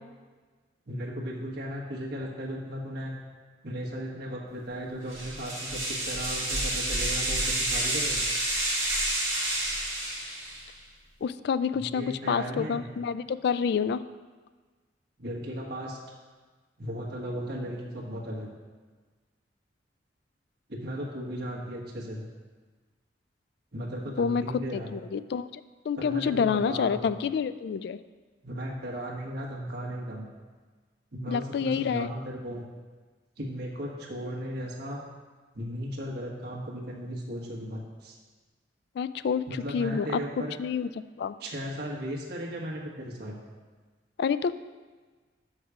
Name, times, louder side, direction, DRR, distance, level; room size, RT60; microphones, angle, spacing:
voice 1, 0.9-3.1 3.6-8.3 11.7-12.9 15.2-16.0 16.8-18.5 20.7-22.3 23.7-24.9 26.0-27.1 28.4-30.2 31.1-32.6 33.4-35.0 35.5-38.2 39.5-40.5 41.4-43.4, equal, 60° right, -2 dB, 1.5 m, -36 dB
sound 1, 5.1-10.7, right 1 dB, 20° right, 2.7 m, -29 dB
voice 2, 11.2-14.0 24.2-24.4 24.7-25.5 25.9-28.0 31.3-32.1 39.0-40.1 40.6-40.9 41.2-41.4 44.2-44.5, left 6 dB, 60° left, 14 dB, 0.3 m, -28 dB
6.5 x 4.8 x 6.8 m, 1.4 s
head